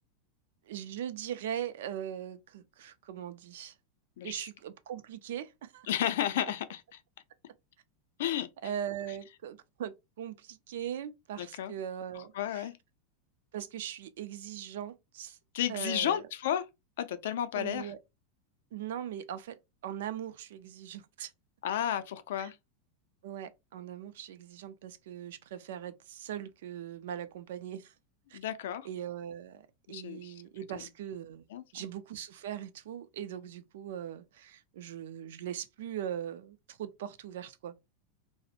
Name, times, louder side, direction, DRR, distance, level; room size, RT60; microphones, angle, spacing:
voice 1, 0.7-3.7 4.2-5.9 8.6-12.7 13.5-15.4 15.7-16.2 17.5-18.0 18.7-19.5 19.8-21.3 22.4-22.5 23.2-27.9 28.3-28.4 28.8-31.4 31.7-37.7, right 10 dB, 70° right, 0.4 m, -40 dB
voice 2, 5.9-6.8 8.2-8.5 11.4-11.8 12.1-12.7 15.5-16.6 17.0-17.9 21.6-22.6 28.3-28.9 29.9-30.4 30.7-30.9 31.5-31.6, left 11 dB, 65° left, 0.4 m, -32 dB
2.4 x 2.0 x 2.7 m
supercardioid pair, 175°, 0 cm